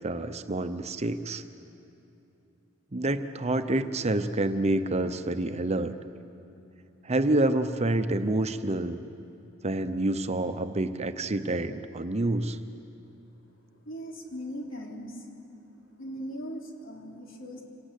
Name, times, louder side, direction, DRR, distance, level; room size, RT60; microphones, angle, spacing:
voice 1, 0.0-1.4 2.9-5.9 7.0-9.0 9.6-12.6, right 2 dB, 35° right, 10 dB, 0.8 m, -28 dB
voice 2, 13.9-15.3 16.0-17.6, equal, 75° left, 0 dB, 3.7 m, -39 dB
26.5 x 19.0 x 8.4 m, 2.8 s
head